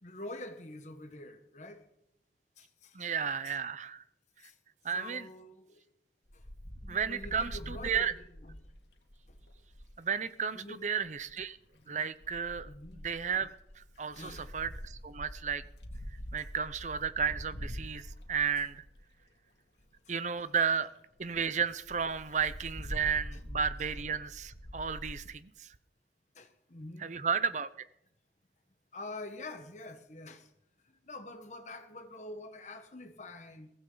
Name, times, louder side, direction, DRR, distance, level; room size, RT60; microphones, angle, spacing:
voice 1, 0.0-1.8 2.6-3.1 3.4-3.6 4.4-4.5 4.9-5.8 6.3-6.4 6.8-8.2 8.4-8.6 10.5-10.8 11.7-12.0 12.6-13.0 14.1-14.5 16.4-16.5 18.0-18.3 20.1-20.2 23.3-23.4 23.8-23.9 26.3-27.1 28.9-30.5 30.8-33.7, left 2 dB, 40° left, 1.3 m, -46 dB
voice 2, 2.9-4.0 4.8-5.3 6.9-8.1 10.0-11.6 11.9-12.7 13.0-15.6 16.3-18.8 20.1-20.9 21.2-25.7 27.0-27.7, right 6 dB, 40° right, 0.7 m, -33 dB
Wind, 6.3-9.9 11.0-11.5 12.2-19.2 19.8-19.9 20.1-20.2 20.5-20.6 20.9-21.0 21.3-21.4 21.8-25.2, equal, 75° left, 2.2 m, -44 dB
22.5 x 16.0 x 4.0 m
head